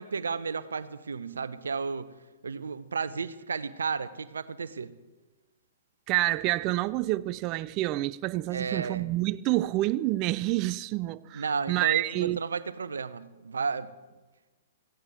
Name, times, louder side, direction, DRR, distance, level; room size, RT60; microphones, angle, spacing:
voice 1, 0.0-2.1 2.4-4.9 8.5-9.1 11.3-13.9, right 5 dB, 75° right, 0.7 m, -33 dB
voice 2, 6.1-12.4, right 17 dB, 35° right, 0.4 m, -28 dB
18.0 x 15.0 x 3.6 m
figure-of-eight pair, 115°, 0 cm